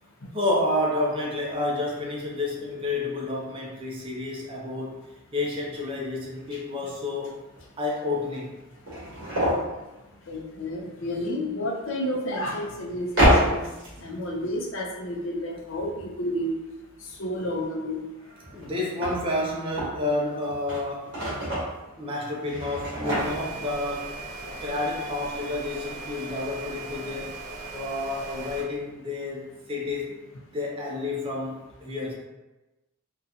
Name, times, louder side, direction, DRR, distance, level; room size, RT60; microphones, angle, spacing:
voice 1, 0.3-5.0 5.3-7.4 7.8-8.5 14.0-14.1 18.5-21.1 22.0-24.2 24.6-27.4 27.7-30.2 30.5-32.1, left 2 dB, 25° right, -3 dB, 0.5 m, -30 dB
sound 1, 5.3-5.4 5.7-5.8 6.4-6.5 7.6-7.7 7.9-8.0 8.6-9.7 11.7-11.8 13.1-14.2 18.2-20.0 20.4-21.8 22.4-23.7 24.1-24.2 24.4-24.6, equal, 55° right, 1.4 m, -27 dB
voice 2, 10.3-13.6 14.0-16.6 17.2-18.0, left 1 dB, 60° left, 0 dB, 0.5 m, -30 dB
sound 2, 23.2-28.6, right 3 dB, 85° right, 0.8 m, -38 dB
3.8 x 2.3 x 2.7 m, 1.1 s
head